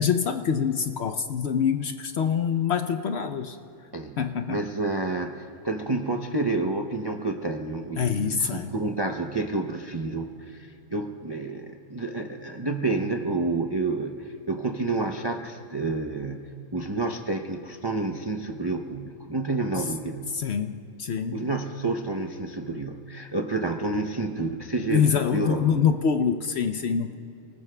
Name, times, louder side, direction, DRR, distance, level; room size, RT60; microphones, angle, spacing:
voice 1, 0.0-3.6 4.2-4.6 8.0-8.7 20.3-21.4 24.9-27.2, left 7 dB, 60° left, 8 dB, 0.7 m, -25 dB
voice 2, 4.5-20.3 21.3-25.9, right 2 dB, 40° right, 4 dB, 0.3 m, -29 dB
30.0 x 19.5 x 2.2 m, 2.6 s
omnidirectional pair, 1.5 m